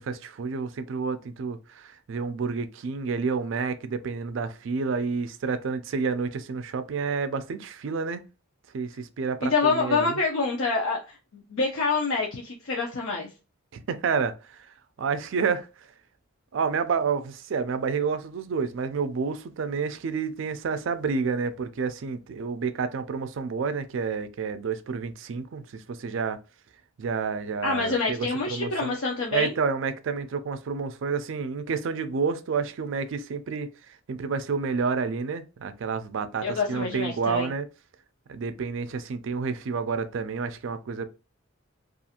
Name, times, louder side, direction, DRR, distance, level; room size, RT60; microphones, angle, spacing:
voice 1, 0.0-8.2 8.7-10.2 13.7-14.3 15.0-15.7 16.5-26.4 27.0-29.0 29.3-33.7 34.1-37.7 38.3-41.0, right 5 dB, 65° right, 0.4 m, -29 dB
voice 2, 9.4-13.3 27.6-29.5 36.4-37.5, left 4 dB, 75° left, 0.5 m, -27 dB
2.4 x 2.4 x 2.7 m
head